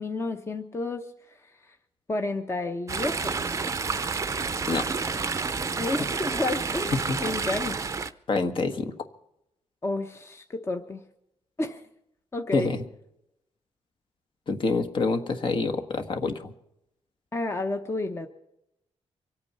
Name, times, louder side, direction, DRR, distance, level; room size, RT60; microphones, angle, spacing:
voice 1, 0.0-1.4 1.7-1.8 2.1-3.4 5.8-7.8 9.8-11.0 11.6-11.8 12.3-12.7 17.3-18.3, left 2 dB, 25° left, 5 dB, 0.9 m, -31 dB
Chatter / Stream, 2.9-8.1, right 4 dB, 25° right, 0.7 m, -29 dB
voice 2, 8.3-8.9 12.5-12.8 14.5-16.5, left 3 dB, 45° left, 7 dB, 1.4 m, -27 dB
24.5 x 8.8 x 5.6 m, 0.81 s
wide cardioid pair, 150°, 11 cm